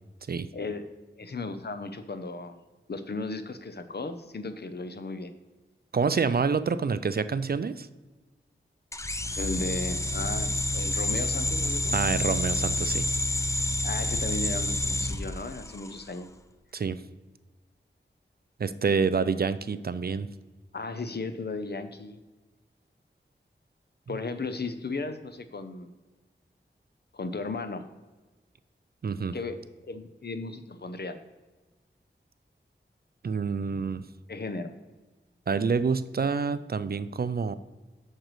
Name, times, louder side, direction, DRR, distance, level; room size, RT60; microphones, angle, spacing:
voice 1, 0.5-0.9 1.2-2.6 2.9-5.3 9.4-12.0 13.8-16.3 20.7-22.2 24.1-25.9 27.1-27.8 29.3-31.2 34.3-34.7, left 3 dB, 55° left, 9 dB, 0.7 m, -35 dB
voice 2, 5.9-7.9 11.9-13.1 16.7-17.0 18.6-20.3 24.1-24.2 29.0-29.4 33.2-34.0 35.5-37.5, right 5 dB, 50° right, 14 dB, 0.4 m, -27 dB
sound 1, 8.9-16.0, left 2 dB, 15° left, 0.4 m, -29 dB
8.8 x 6.5 x 3.1 m, 1.2 s
wide cardioid pair, 70°, 20 cm